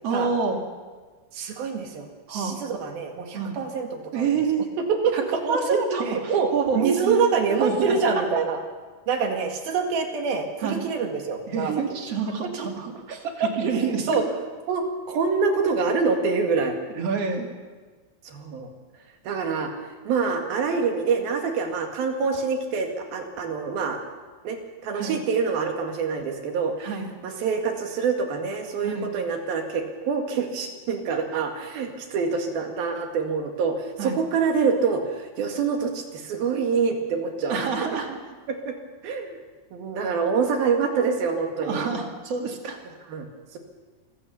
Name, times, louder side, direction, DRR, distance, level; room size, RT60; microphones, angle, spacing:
voice 1, 0.0-0.6 2.3-2.6 3.3-3.6 4.1-4.7 5.1-5.2 5.5-6.2 6.5-7.2 7.5-8.0 10.6-10.9 11.5-14.3 17.0-17.5 24.9-25.2 26.8-27.1 28.8-29.1 31.3-31.4 34.0-34.2 37.5-38.1 41.6-42.8, right 5 dB, 45° right, 3 dB, 3.0 m, -27 dB
voice 2, 1.3-4.4 4.8-8.6 9.1-11.7 12.4-12.5 13.2-14.2 14.7-16.7 18.3-18.7 19.3-19.7 20.1-24.0 24.4-26.7 27.2-37.6 38.1-38.2 38.5-38.7 39.0-39.4 39.7-41.8 43.1-43.3 43.5-43.6, right 5 dB, 75° right, 4 dB, 3.9 m, -26 dB
26.5 x 15.5 x 7.0 m, 1.4 s
omnidirectional pair, 4.3 m